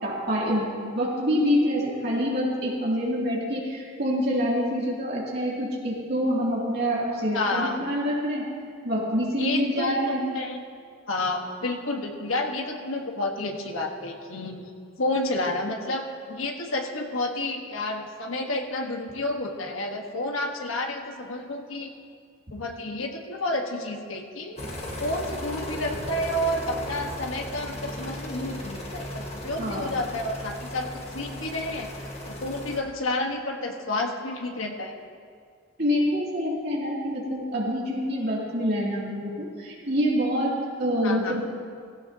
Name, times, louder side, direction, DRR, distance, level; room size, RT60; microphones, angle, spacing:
voice 1, 0.0-8.5 8.8-10.2 29.6-29.8 35.8-41.4, equal, 50° right, -5 dB, 2.9 m, -26 dB
voice 2, 7.3-7.8 9.4-10.6 11.1-14.7 15.0-21.9 22.5-24.6 25.0-31.9 32.2-35.0 41.0-41.3, left 2 dB, 90° left, 2 dB, 1.5 m, -30 dB
sound 1, 24.6-32.8, left 1 dB, 30° left, 1.6 m, -36 dB
16.5 x 16.0 x 2.9 m, 2.2 s
head